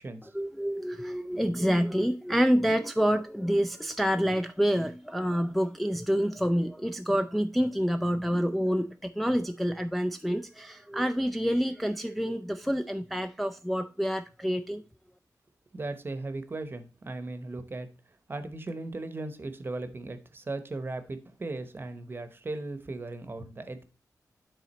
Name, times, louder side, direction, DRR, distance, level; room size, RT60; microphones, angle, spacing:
voice 1, 0.3-14.8, equal, ahead, 0.3 m, -27 dB
voice 2, 15.7-17.9 18.3-23.8, right 2 dB, 35° right, 0.8 m, -37 dB
9.6 x 3.9 x 4.1 m
wide cardioid pair, 125°, 7 cm